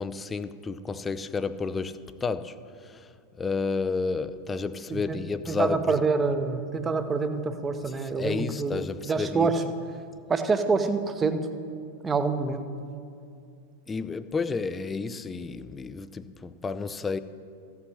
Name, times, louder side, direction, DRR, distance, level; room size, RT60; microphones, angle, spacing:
voice 1, 0.0-2.6 2.8-3.1 3.4-6.0 8.1-9.5 13.9-17.2, left 4 dB, 15° left, 0.4 m, -31 dB
voice 2, 4.9-8.8 9.1-9.7 10.3-11.5 12.0-12.6, right 4 dB, 15° right, 0.8 m, -26 dB
14.5 x 5.8 x 7.7 m
figure-of-eight pair, 90°, 0 cm